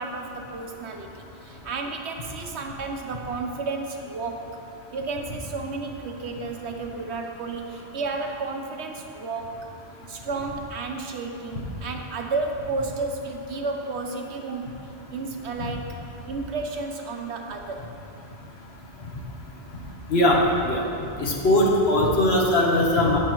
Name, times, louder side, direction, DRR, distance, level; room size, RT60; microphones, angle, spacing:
voice 1, 0.0-4.5 4.9-9.6 10.1-14.8 15.1-16.0 16.3-17.9, right 3 dB, 80° right, 3 dB, 1.1 m, -32 dB
voice 2, 21.2-23.2, left 1 dB, 70° left, -1 dB, 1.4 m, -20 dB
16.0 x 6.2 x 3.1 m, 2.7 s
omnidirectional pair, 1.1 m